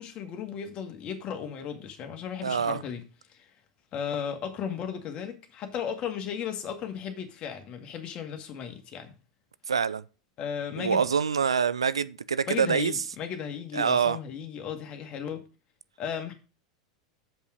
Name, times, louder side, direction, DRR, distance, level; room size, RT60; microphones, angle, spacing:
voice 1, 0.0-3.0 3.3-3.5 3.9-9.1 10.4-11.1 12.5-15.4 16.0-16.3, left 8 dB, 40° left, 2.0 m, -35 dB
voice 2, 2.4-2.8 9.7-10.0 10.8-13.0 13.7-14.2, right 6 dB, 85° right, 0.4 m, -25 dB
7.4 x 5.5 x 6.2 m
figure-of-eight pair, 85°, 3 cm